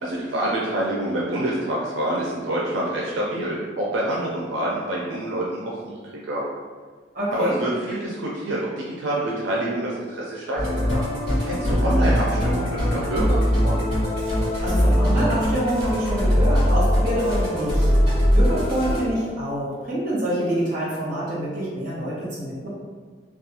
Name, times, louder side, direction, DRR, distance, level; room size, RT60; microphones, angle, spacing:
voice 1, 0.0-6.0 6.3-6.4 7.3-11.1 11.4-13.8, right 1 dB, 85° right, -4 dB, 0.4 m, -26 dB
voice 2, 7.1-7.6 11.6-12.1 14.3-22.7, right 1 dB, 45° right, -7 dB, 1.0 m, -27 dB
Musical instrument, 10.6-19.0, equal, 30° right, 1.3 m, -21 dB
2.4 x 2.3 x 2.8 m, 1.5 s
head